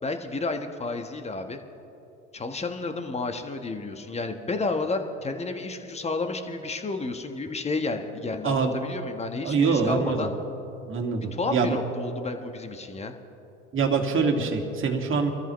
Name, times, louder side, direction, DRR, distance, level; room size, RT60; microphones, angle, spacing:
voice 1, 0.0-1.6 2.3-10.3 11.3-13.1, left 3 dB, 20° left, 6 dB, 1.3 m, -31 dB
voice 2, 9.4-10.3 10.8-11.8 13.7-15.3, right 5 dB, 35° right, 2 dB, 2.2 m, -24 dB
26.0 x 13.5 x 3.2 m, 3.0 s
hypercardioid pair, 80°, 34 cm